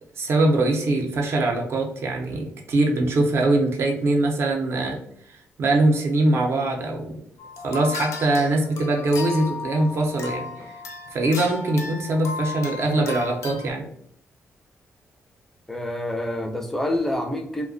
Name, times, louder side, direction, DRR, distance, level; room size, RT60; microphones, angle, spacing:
voice 1, 0.2-5.0 5.6-7.2 7.6-10.7 11.1-13.8, right 2 dB, 55° right, 1 dB, 0.5 m, -22 dB
sound 1, 7.4-13.7, left 5 dB, 85° left, 0.5 m, -35 dB
voice 2, 15.7-17.7, left 1 dB, 5° left, 2 dB, 0.4 m, -27 dB
2.3 x 2.1 x 2.4 m, 0.70 s
cardioid pair, 110°, 5 cm